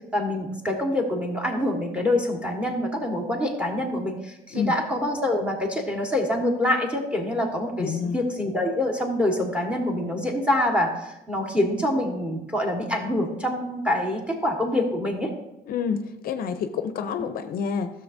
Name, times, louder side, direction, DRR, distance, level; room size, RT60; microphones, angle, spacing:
voice 1, 0.1-15.3, left 1 dB, 5° right, 2 dB, 1.5 m, -25 dB
voice 2, 7.8-8.2 15.7-17.9, left 6 dB, 60° left, 9 dB, 0.6 m, -28 dB
13.0 x 6.6 x 2.6 m, 0.91 s
cardioid pair, 110°, 17 cm